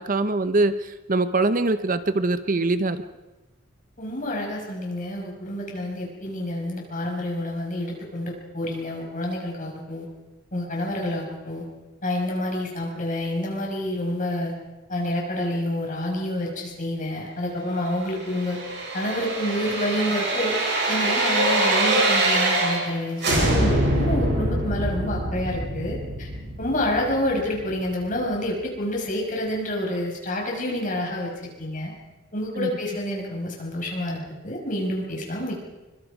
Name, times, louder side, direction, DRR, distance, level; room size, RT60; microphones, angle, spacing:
voice 1, 0.0-3.0 32.6-32.7, right 2 dB, 45° right, 11 dB, 0.8 m, -23 dB
voice 2, 4.0-10.1 10.5-11.6 12.0-14.6 14.9-18.6 18.9-20.6 20.9-26.3 26.6-31.9 32.3-35.6, left 1 dB, 40° left, 0 dB, 5.9 m, -28 dB
sound 1, 18.2-22.9 23.2-28.1 28.4-28.5, right 2 dB, 60° right, 7.7 m, -24 dB
24.5 x 23.0 x 5.0 m, 1.1 s
head